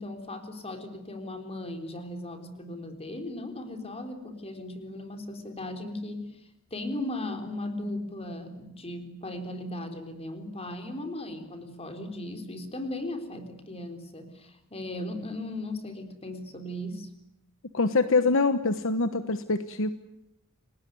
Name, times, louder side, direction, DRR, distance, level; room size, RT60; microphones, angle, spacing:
voice 1, 0.0-17.1, left 1 dB, 30° left, 6 dB, 3.7 m, -37 dB
voice 2, 17.7-19.9, left 3 dB, 65° left, 11 dB, 1.1 m, -24 dB
30.0 x 19.0 x 9.4 m, 0.84 s
head